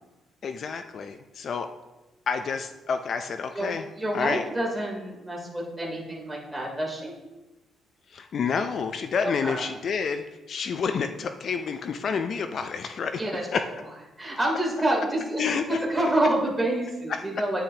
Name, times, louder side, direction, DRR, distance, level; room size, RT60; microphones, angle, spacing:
voice 1, 0.4-1.7 2.3-3.8 4.1-4.4 8.1-13.2 13.5-13.6 15.4-15.8 17.1-17.2, left 6 dB, 55° left, 8 dB, 0.5 m, -29 dB
voice 2, 4.0-7.1 9.2-9.7 13.2-13.5 14.2-17.6, right 1 dB, 10° right, -3 dB, 3.3 m, -28 dB
9.9 x 8.9 x 2.9 m, 1.1 s
cardioid pair, 90°, 0 cm